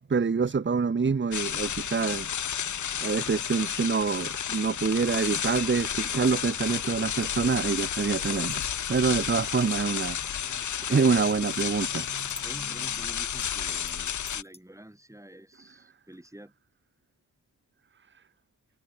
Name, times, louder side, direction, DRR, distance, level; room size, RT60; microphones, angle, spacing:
voice 1, 0.1-2.5 3.0-8.6 8.9-12.3, right 5 dB, 30° right, 1.0 m, -26 dB
shopping cart metal rattle push ext, 1.3-14.4, left 8 dB, 55° left, 0.7 m, -32 dB
sound 1, 8.3-8.9 11.5-11.7 12.0-12.9 13.3-14.6, left 2 dB, 15° left, 2.5 m, -50 dB
voice 2, 12.4-16.5, right 1 dB, 10° right, 6.7 m, -47 dB
wide cardioid pair, 85°, 36 cm